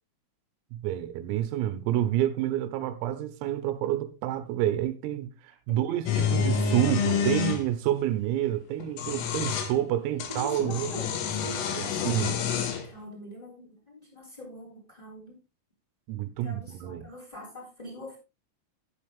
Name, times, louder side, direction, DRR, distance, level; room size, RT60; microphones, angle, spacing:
voice 1, 0.7-11.0 11.8-12.5 16.1-17.1, right 12 dB, 90° right, 3.7 m, -29 dB
sound 1, 6.1-7.6 8.8-9.7 10.2-12.9, left 6 dB, 75° left, 4.4 m, -28 dB
voice 2, 10.1-15.4 16.4-18.2, equal, 5° left, 6.8 m, -44 dB
12.0 x 11.5 x 3.5 m
omnidirectional pair, 6.0 m